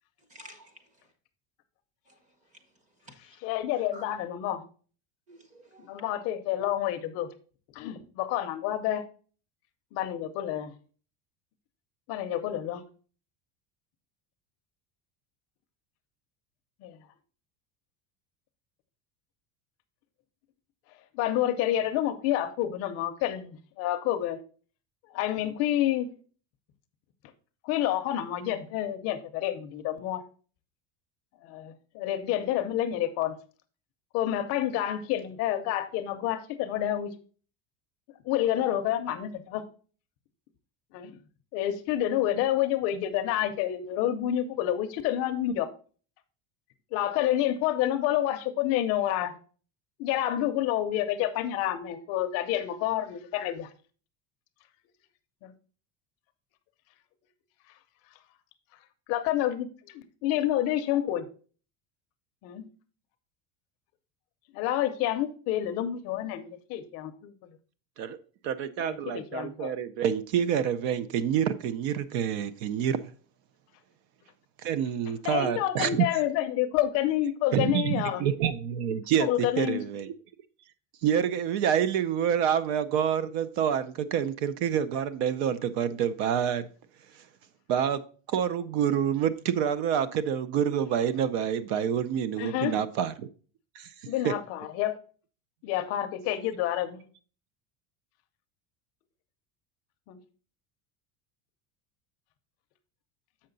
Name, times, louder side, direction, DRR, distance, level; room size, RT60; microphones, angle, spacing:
voice 1, 0.3-1.1 2.1-2.7 3.0-3.4 3.9-4.0 5.3-6.0, equal, 20° right, 0.9 m, -52 dB
voice 2, 3.4-4.6 5.8-7.3 7.7-9.0 9.9-10.7 12.1-12.8 16.8-17.0 21.1-24.4 25.1-26.1 27.6-30.2 31.4-33.4 34.1-37.1 38.3-39.6 40.9-41.2 41.5-45.7 46.9-49.3 50.0-53.7 55.4-55.5 59.1-61.3 62.4-62.7 64.5-67.5 68.8-69.7 75.2-78.3 79.2-79.8 92.4-92.8 94.1-94.9 95.6-97.0 100.1-100.2, left 12 dB, 40° left, 0.5 m, -29 dB
voice 3, 68.4-73.0 74.6-76.1 77.5-80.1 81.0-86.7 87.7-88.0 88.3-93.3 93.8-93.9 94.2-94.3, right 8 dB, 60° right, 0.6 m, -27 dB
7.5 x 5.7 x 3.9 m
cardioid pair, 180°, 37 cm